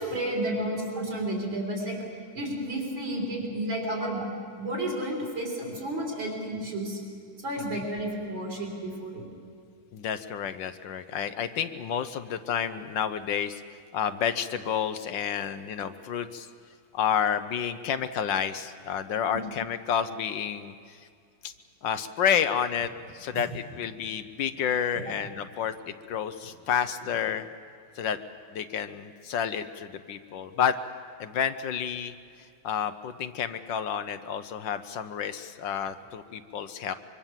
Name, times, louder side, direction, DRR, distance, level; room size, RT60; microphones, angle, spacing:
voice 1, 0.0-2.0 2.3-4.3 4.6-7.0 7.4-9.3 19.3-19.4 23.3-23.4 24.9-25.3, right 1 dB, 65° right, -2 dB, 5.1 m, -32 dB
voice 2, 9.9-13.6 13.9-16.5 16.9-20.7 21.4-21.5 21.8-22.9 23.1-27.5 28.0-28.2 28.5-30.8 31.2-32.1 32.6-36.9, left 8 dB, 65° left, 11 dB, 1.3 m, -30 dB
25.0 x 23.5 x 7.4 m, 2.3 s
omnidirectional pair, 2.4 m